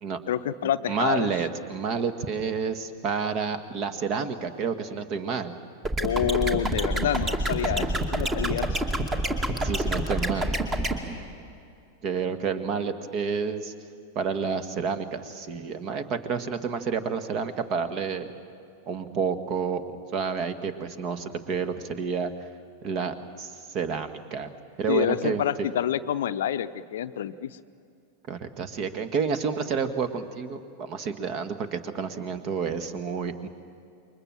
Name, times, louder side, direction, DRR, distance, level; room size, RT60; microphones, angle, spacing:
voice 1, 0.3-1.3 6.0-8.8 24.9-27.6, left 10 dB, 60° left, 13 dB, 0.7 m, -27 dB
voice 2, 0.9-5.5 7.8-8.0 9.6-10.5 12.0-13.7 14.2-18.3 18.9-19.8 20.1-22.3 22.8-24.5 24.8-25.7 28.3-33.5, right 5 dB, 40° right, 10 dB, 1.7 m, -29 dB
sound 1, 5.8-10.9, right 1 dB, 20° right, 2.4 m, -26 dB
28.5 x 23.0 x 7.6 m, 2.5 s
figure-of-eight pair, 90°, 0 cm